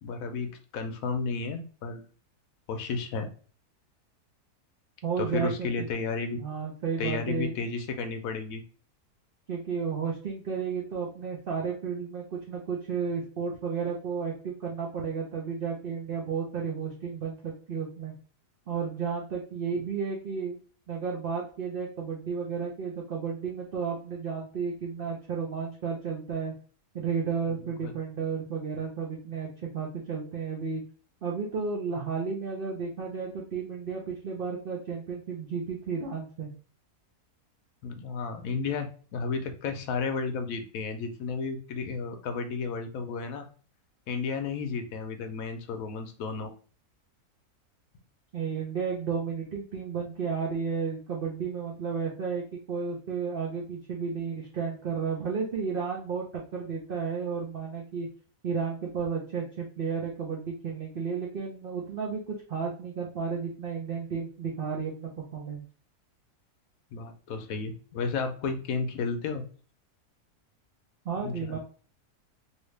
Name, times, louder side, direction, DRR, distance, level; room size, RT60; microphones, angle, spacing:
voice 1, 0.0-2.0 2.7-3.3 5.2-6.4 7.0-8.6 27.8-27.9 37.8-43.5 44.1-46.5 66.9-69.4 71.2-71.6, left 4 dB, 70° left, 6 dB, 1.0 m, -32 dB
voice 2, 5.0-5.9 6.3-7.5 9.5-18.1 18.7-20.6 20.9-26.5 26.9-30.8 31.2-36.5 48.3-58.1 58.4-65.6 71.0-71.6, right 6 dB, 55° right, -2 dB, 0.6 m, -33 dB
2.9 x 2.8 x 3.2 m, 0.41 s
omnidirectional pair, 1.7 m